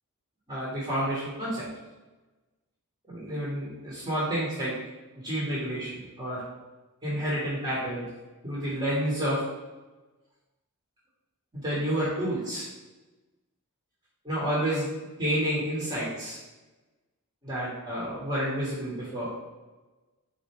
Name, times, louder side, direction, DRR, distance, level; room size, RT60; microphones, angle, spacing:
voice 1, 0.5-1.7 3.1-4.8 5.1-6.4 7.0-8.1 8.4-9.4 11.6-12.7 14.2-14.9 15.2-16.4 17.4-19.3, equal, 20° right, -8 dB, 1.2 m, -29 dB
4.2 x 3.7 x 3.3 m, 1.2 s
head